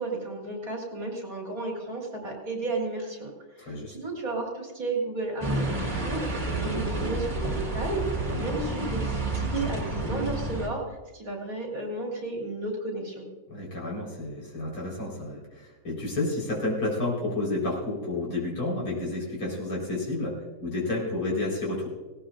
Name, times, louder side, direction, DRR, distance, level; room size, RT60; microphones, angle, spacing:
voice 1, 0.0-3.3 3.6-13.3, right 2 dB, 40° right, -2 dB, 3.9 m, -33 dB
voice 2, 3.6-4.0 8.1-8.4 13.5-21.9, left 2 dB, 75° left, -4 dB, 5.2 m, -31 dB
sound 1, 5.4-10.7, right 2 dB, 20° right, 2.5 m, -30 dB
18.5 x 18.0 x 2.5 m, 1.2 s
omnidirectional pair, 2.2 m